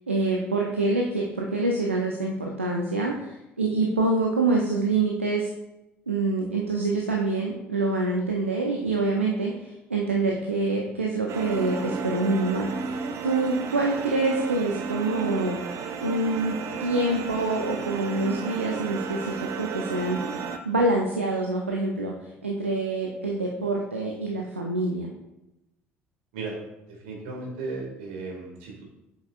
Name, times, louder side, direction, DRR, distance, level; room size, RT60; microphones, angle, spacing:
voice 1, 0.1-5.5 6.1-12.9 13.2-15.6 16.0-20.2 20.7-22.1 22.4-25.1, right 2 dB, 85° right, -1 dB, 0.7 m, -26 dB
sound 1, 11.3-20.6, right 5 dB, 45° right, 0.7 m, -33 dB
voice 2, 26.9-28.8, right 3 dB, 65° right, -1 dB, 2.3 m, -36 dB
8.5 x 7.2 x 2.6 m, 0.91 s
figure-of-eight pair, 55°, 7 cm